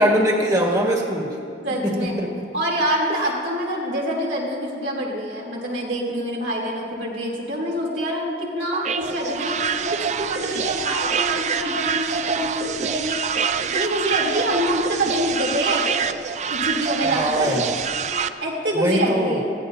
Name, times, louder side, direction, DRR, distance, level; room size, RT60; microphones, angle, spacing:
voice 1, 0.0-1.3 1.8-2.4 17.0-17.7 18.7-19.4, equal, 20° right, -1 dB, 1.8 m, -22 dB
voice 2, 1.6-2.1 2.5-13.2 13.7-15.8 16.5-19.5, equal, 75° right, -3 dB, 3.4 m, -26 dB
sound 1, 8.7-18.3, right 6 dB, 40° right, 0.4 m, -26 dB
21.0 x 15.5 x 2.8 m, 2.7 s
head